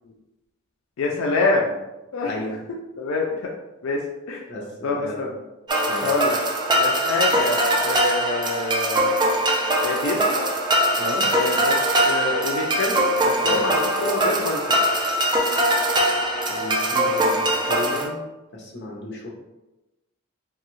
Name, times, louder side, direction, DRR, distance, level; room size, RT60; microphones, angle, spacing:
voice 1, 1.0-1.8 2.1-2.3 3.0-3.5 3.8-4.0 4.3-4.4 4.8-5.3 6.0-6.4 6.7-9.1 9.8-10.5 11.3-11.8 12.0-14.8, left 3 dB, 90° left, -1 dB, 0.4 m, -26 dB
voice 2, 4.5-5.2 5.8-6.1 11.0-11.3 13.4-13.7 16.5-18.2 18.5-19.3, left 2 dB, 60° left, -2 dB, 0.7 m, -33 dB
sound 1, 5.7-18.1, right 1 dB, 20° right, 0.3 m, -22 dB
2.6 x 2.3 x 3.0 m, 1.0 s
head